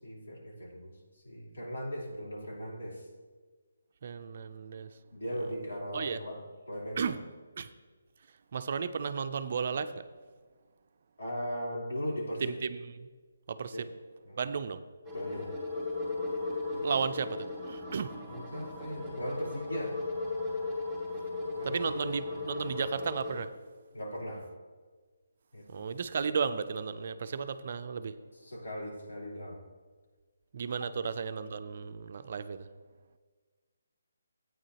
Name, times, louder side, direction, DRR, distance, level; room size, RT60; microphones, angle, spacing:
voice 1, 0.0-3.1 5.1-7.1 11.2-12.6 13.7-13.9 14.2-14.4 15.1-15.5 16.7-16.8 18.3-20.0 21.6-21.8 23.9-24.4 25.5-25.9 28.4-29.6 30.8-30.9, equal, 75° left, -3 dB, 3.5 m, -38 dB
voice 2, 4.0-4.9 5.9-6.2 7.0-7.2 7.6-7.7 8.5-9.9 12.4-13.1 13.5-13.9 14.4-14.8 16.8-18.2 21.6-23.5 25.7-28.1 30.5-32.7, right 6 dB, 45° right, 10 dB, 0.4 m, -34 dB
sound 1, 15.0-23.3, left 3 dB, 5° left, 2.4 m, -36 dB
14.0 x 9.1 x 2.9 m, 1.4 s
hypercardioid pair, 170°, 0 cm